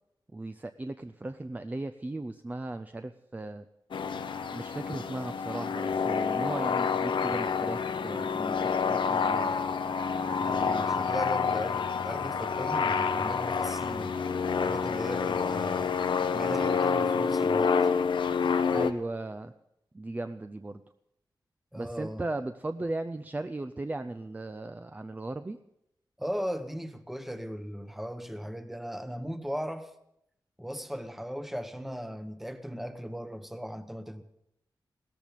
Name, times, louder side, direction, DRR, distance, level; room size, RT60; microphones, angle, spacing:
voice 1, 0.3-3.6 4.5-9.6 18.7-19.5 19.9-20.8 21.8-25.6, right 2 dB, 20° right, 0.5 m, -37 dB
sound 1, 3.9-18.9, left 6 dB, 80° left, 0.8 m, -28 dB
voice 2, 10.4-14.2 14.6-16.0 16.3-17.8 21.7-22.2 26.2-29.9 30.6-34.2, equal, 5° right, 1.0 m, -37 dB
17.0 x 13.5 x 5.2 m
wide cardioid pair, 125°, 8 cm